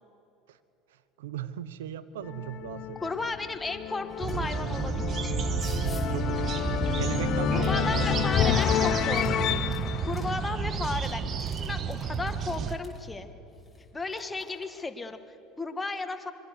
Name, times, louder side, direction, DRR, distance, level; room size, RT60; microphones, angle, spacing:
voice 1, 0.9-3.1 6.0-8.2, right 10 dB, 80° right, 14 dB, 1.1 m, -38 dB
sound 1, 2.2-11.3, left 10 dB, 50° left, 0.8 m, -30 dB
voice 2, 3.0-5.4 7.5-9.6 10.1-13.3 13.9-16.3, left 3 dB, 15° left, 7 dB, 1.9 m, -34 dB
sound 2, 4.1-4.5 4.8-8.3 8.5-10.2 10.5-13.0 13.6-14.8, left 2 dB, ahead, 6.0 m, -47 dB
sound 3, 4.2-12.8, right 6 dB, 40° right, 1.3 m, -31 dB
25.5 x 22.5 x 6.8 m, 2.9 s
hypercardioid pair, 80°, 0 cm